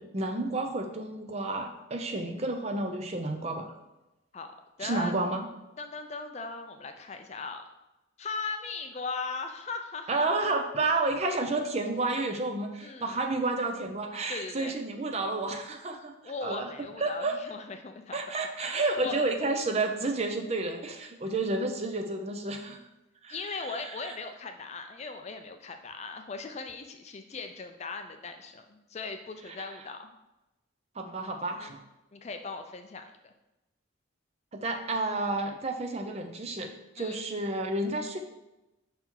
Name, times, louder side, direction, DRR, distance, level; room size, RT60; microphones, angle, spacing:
voice 1, 0.0-3.7 4.8-5.5 10.1-16.1 16.4-16.7 17.0-17.4 18.1-22.8 23.2-23.8 29.6-29.7 31.0-31.8 34.5-36.7 37.0-38.2, right 2 dB, 30° right, 4 dB, 0.5 m, -31 dB
voice 2, 4.8-5.1 5.8-7.6 8.2-10.6 12.8-13.2 14.3-14.7 16.2-18.2 18.7-19.1 23.3-30.1 31.6-31.7 32.1-33.3 37.0-37.2, left 4 dB, 35° left, 6 dB, 0.4 m, -39 dB
5.7 x 4.4 x 3.7 m, 0.98 s
head